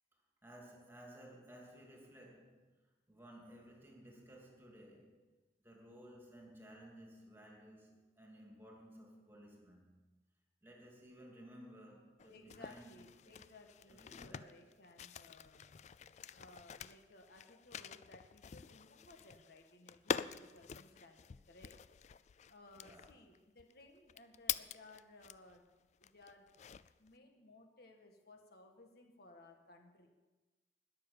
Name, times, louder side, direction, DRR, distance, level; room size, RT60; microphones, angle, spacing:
voice 1, 0.4-2.8 3.1-5.3 5.6-10.0 10.6-13.0 13.2-13.3 13.9-14.6 22.8-23.2, equal, 15° right, -1 dB, 2.7 m, -57 dB
sound 1, 12.2-25.6 26.0-27.1, left 8 dB, 40° left, 0.3 m, -46 dB
voice 2, 12.3-15.7 16.3-21.7 22.5-25.6 26.0-26.5 27.0-30.1, left 2 dB, 60° left, 3 dB, 1.7 m, -60 dB
20.0 x 6.8 x 7.1 m, 1.2 s
head